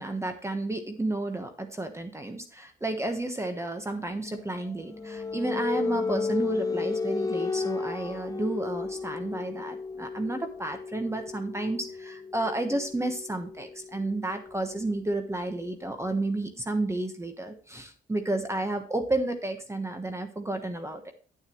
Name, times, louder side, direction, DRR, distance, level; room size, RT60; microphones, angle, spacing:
voice 1, 0.0-21.1, right 2 dB, 15° right, 6 dB, 1.2 m, -31 dB
sound 1, 4.1-15.6, left 4 dB, 15° left, 0.6 m, -34 dB
9.1 x 9.0 x 3.1 m, 0.40 s
cardioid pair, 90°, 20 cm